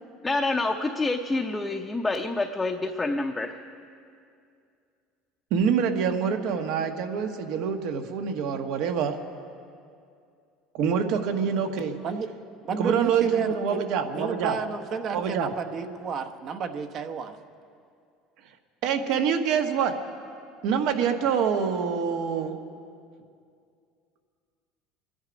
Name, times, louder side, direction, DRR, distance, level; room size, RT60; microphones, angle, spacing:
voice 1, 0.2-3.5, left 2 dB, 10° left, 2 dB, 0.7 m, -27 dB
voice 2, 5.5-9.2 10.7-11.9 12.8-14.5 15.1-15.5 18.8-19.9 20.6-22.6, right 7 dB, 65° right, 6 dB, 1.3 m, -26 dB
voice 3, 12.7-13.8 14.1-17.4, right 6 dB, 45° right, 7 dB, 0.9 m, -31 dB
26.5 x 10.5 x 5.2 m, 2.4 s
cardioid pair, 130°, 0 cm